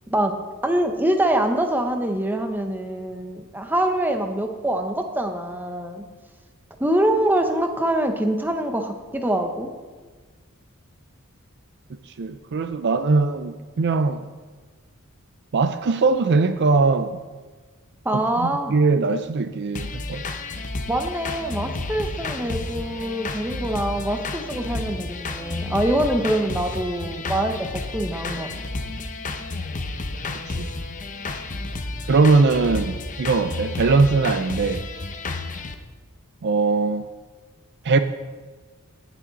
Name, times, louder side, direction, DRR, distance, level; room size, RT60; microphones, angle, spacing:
voice 1, 0.1-0.4 0.6-6.0 6.8-9.7 18.0-18.8 20.9-28.5, right 1 dB, 10° right, 5 dB, 0.8 m, -24 dB
voice 2, 12.2-14.2 15.5-17.2 18.1-20.2 30.5-30.7 32.1-34.8 36.4-37.1 37.8-38.0, right 3 dB, 50° right, 10 dB, 0.4 m, -21 dB
sound 1, 19.8-35.7, left 3 dB, 35° left, 0.8 m, -31 dB
18.0 x 6.2 x 4.0 m, 1.4 s
head